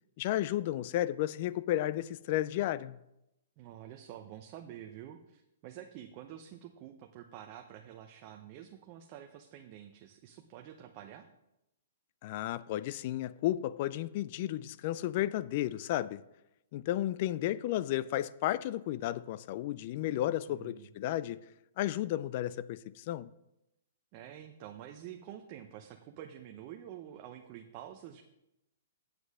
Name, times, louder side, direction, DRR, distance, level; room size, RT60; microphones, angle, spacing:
voice 1, 0.2-3.0 12.2-16.2 16.7-21.5 21.8-23.3, left 13 dB, 45° left, 0.4 m, -33 dB
voice 2, 3.6-11.3 20.5-20.9 24.1-28.2, right 11 dB, 35° right, 0.7 m, -48 dB
8.3 x 7.8 x 4.9 m
hypercardioid pair, 145°, 0 cm